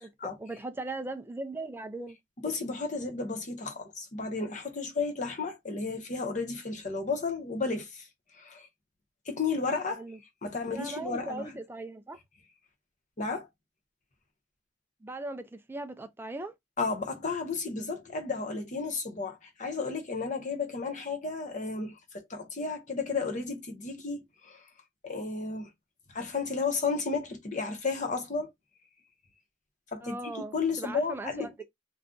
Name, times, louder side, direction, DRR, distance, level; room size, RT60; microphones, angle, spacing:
voice 1, 0.0-2.2 10.0-10.2 10.7-12.2 15.0-16.5 30.0-31.6, right 2 dB, 10° right, 0.3 m, -39 dB
voice 2, 2.4-8.1 8.4-8.7 9.3-10.0 10.4-11.5 13.2-13.5 16.8-24.6 25.0-25.7 26.1-28.5 29.9-31.6, left 4 dB, 40° left, 0.8 m, -33 dB
2.5 x 2.3 x 3.7 m
head